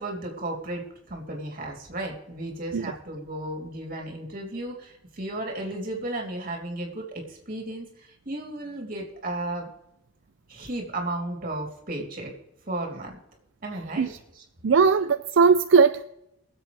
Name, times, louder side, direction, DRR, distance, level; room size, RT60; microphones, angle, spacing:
voice 1, 0.0-9.7 10.5-12.3 12.7-13.1 13.6-14.4, right 1 dB, 45° right, 1 dB, 3.3 m, -34 dB
voice 2, 14.6-16.0, right 5 dB, 70° right, 11 dB, 0.4 m, -19 dB
23.5 x 7.9 x 3.4 m, 0.83 s
head